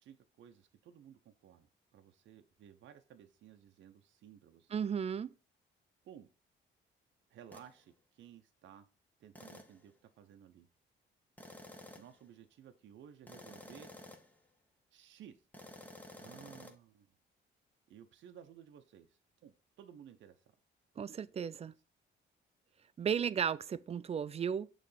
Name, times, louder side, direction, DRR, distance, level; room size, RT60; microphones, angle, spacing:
voice 1, 0.0-4.8 6.0-6.3 7.3-8.9 9.2-10.7 12.0-13.9 14.9-15.4 16.1-17.2 17.9-20.4 23.0-23.1, right 9 dB, 70° right, 0.6 m, -56 dB
voice 2, 4.7-5.3 21.0-21.7 23.0-24.7, right 7 dB, 30° right, 0.4 m, -34 dB
sound 1, 7.5-7.7 9.3-9.8 11.4-12.2 13.3-14.4 15.5-16.7, left 1 dB, 10° left, 1.0 m, -52 dB
6.6 x 3.2 x 5.5 m
cardioid pair, 90°, 20 cm